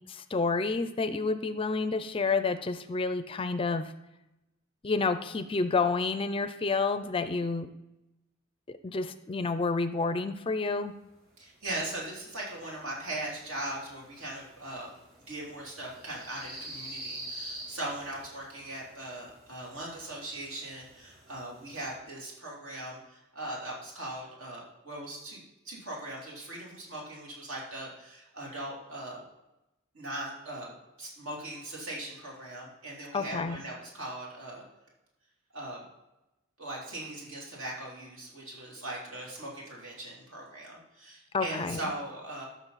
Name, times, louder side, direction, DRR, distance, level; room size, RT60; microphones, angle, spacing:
voice 1, 0.1-3.9 4.8-7.7 8.7-11.0 33.1-33.6 41.3-41.8, left 4 dB, 25° left, 11 dB, 0.4 m, -29 dB
sound 1, 11.1-22.0, right 1 dB, 45° right, 3.4 m, -48 dB
voice 2, 11.4-14.9 15.3-29.2 29.9-34.6 35.5-35.9 36.6-42.5, right 1 dB, 75° right, -3 dB, 3.1 m, -40 dB
13.5 x 6.0 x 4.1 m, 0.95 s
head